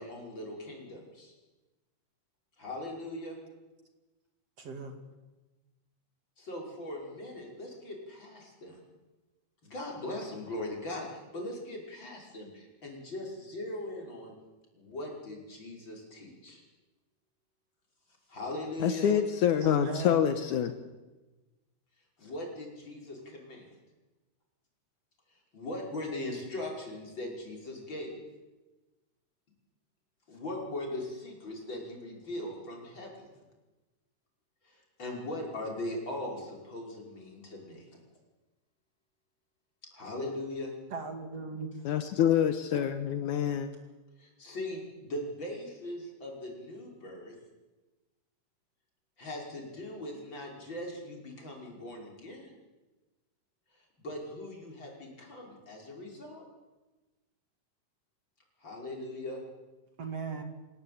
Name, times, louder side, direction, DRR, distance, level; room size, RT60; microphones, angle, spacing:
voice 1, 0.0-1.3 2.6-3.4 6.4-8.8 9.6-14.3 14.7-16.6 18.3-19.2 22.2-23.7 25.5-28.2 30.3-33.3 34.6-37.8 39.9-40.7 44.2-47.3 49.2-52.5 54.0-56.5 58.6-59.4, left 1 dB, 35° left, 0 dB, 6.3 m, -40 dB
voice 2, 4.6-5.0 19.6-20.3 40.9-41.8 60.0-60.4, right 4 dB, 50° right, 5 dB, 3.1 m, -38 dB
voice 3, 18.8-20.7 41.9-43.7, left 9 dB, 70° left, 9 dB, 2.5 m, -26 dB
28.0 x 17.5 x 8.8 m, 1.2 s
omnidirectional pair, 3.8 m